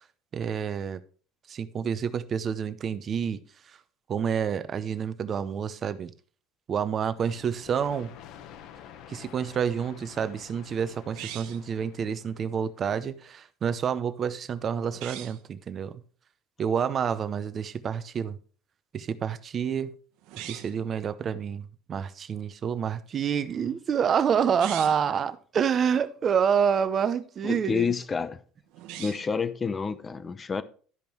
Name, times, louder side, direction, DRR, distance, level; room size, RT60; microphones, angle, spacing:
voice 1, 0.3-1.0 1.5-3.4 4.1-6.1 6.7-8.1 9.1-16.0 16.6-18.4 18.9-19.9 20.4-27.9, right 7 dB, 30° right, 0.8 m, -28 dB
sound 1, 7.1-12.7, left 9 dB, 60° left, 1.2 m, -49 dB
sound 2, 11.1-11.7 14.9-15.4 20.2-20.8 24.4-25.1 28.7-29.4, right 12 dB, 70° right, 1.1 m, -40 dB
voice 2, 27.4-28.4 29.0-30.6, left 5 dB, 20° left, 0.7 m, -29 dB
12.5 x 5.3 x 4.6 m
cardioid pair, 140°, 0 cm